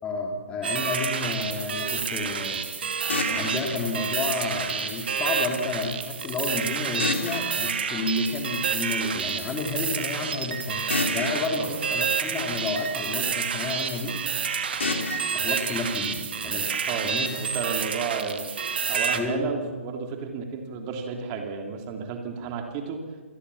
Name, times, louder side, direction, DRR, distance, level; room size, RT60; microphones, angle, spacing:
voice 1, 0.0-2.6 3.3-10.8 11.1-14.2 15.3-16.7 17.0-17.4 19.1-19.5, left 3 dB, 15° left, 3 dB, 3.0 m, -30 dB
sound 1, 0.6-19.2, right 6 dB, 50° right, 2.4 m, -29 dB
sound 2, 3.1-5.1 7.0-9.0 10.9-13.1 14.8-16.8, left 3 dB, 60° left, 3.9 m, -34 dB
voice 2, 16.9-18.5 18.9-23.0, right 5 dB, 25° right, 4 dB, 3.0 m, -32 dB
27.0 x 20.5 x 7.1 m, 1.4 s
figure-of-eight pair, 135°, 7 cm